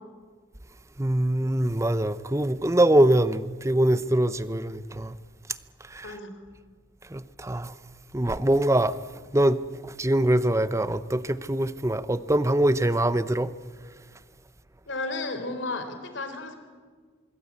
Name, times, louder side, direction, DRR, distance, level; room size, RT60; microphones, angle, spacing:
voice 1, 1.0-5.1 5.9-6.1 7.1-7.7 8.1-9.0 9.3-13.5, right 1 dB, 15° right, 0.7 m, -23 dB
voice 2, 6.0-6.4 14.9-16.6, left 2 dB, 60° left, 3.8 m, -33 dB
25.5 x 22.0 x 8.6 m
head